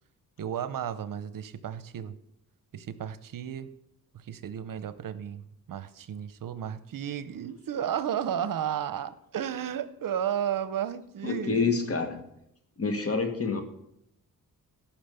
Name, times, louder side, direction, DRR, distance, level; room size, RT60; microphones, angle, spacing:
voice 1, 0.4-2.2 2.7-3.7 4.1-11.7, right 9 dB, 70° right, 14 dB, 0.8 m, -33 dB
voice 2, 11.2-12.2 12.8-13.6, left 4 dB, 40° left, 6 dB, 1.8 m, -27 dB
13.5 x 6.0 x 6.8 m, 0.77 s
cardioid pair, 95°, 35 cm